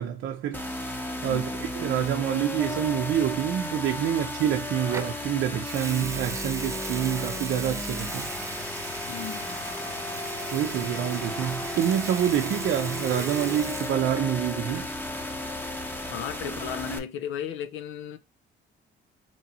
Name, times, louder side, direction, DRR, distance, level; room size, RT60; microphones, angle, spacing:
voice 1, 0.0-8.3 10.5-14.9, right 10 dB, 75° right, 0.5 m, -27 dB
sound 1, 0.5-17.0, left 1 dB, 10° left, 0.8 m, -34 dB
Water tap faucet / Sink (filling or washing) / Liquid, 4.9-5.2 5.6-14.4 14.6-15.0, right 3 dB, 15° right, 0.4 m, -39 dB
voice 2, 9.1-9.6 16.1-18.2, left 8 dB, 85° left, 0.6 m, -35 dB
3.1 x 2.7 x 4.1 m
cardioid pair, 90°, 20 cm